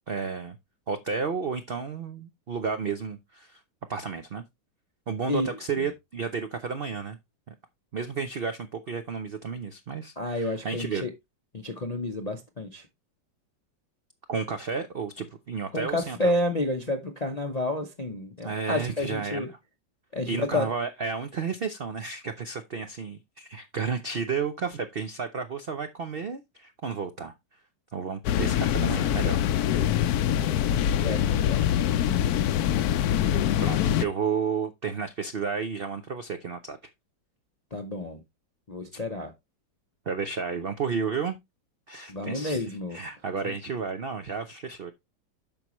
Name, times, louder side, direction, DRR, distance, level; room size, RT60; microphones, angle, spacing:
voice 1, 0.1-0.6 0.9-3.6 3.9-4.4 5.1-7.2 7.5-7.6 7.9-11.0 14.3-16.4 18.4-19.6 20.3-27.3 27.9-29.5 33.6-36.8 38.9-39.0 40.1-41.4 41.9-44.9, right 5 dB, 70° right, 0.5 m, -32 dB
voice 2, 10.2-11.1 11.5-12.9 15.7-19.5 20.1-20.7 31.0-32.4 37.7-38.2 38.7-39.3 42.1-43.0, left 1 dB, 45° left, 0.5 m, -30 dB
sound 1, 28.2-34.0, left 10 dB, 70° left, 1.0 m, -24 dB
8.9 x 6.1 x 3.0 m
omnidirectional pair, 2.0 m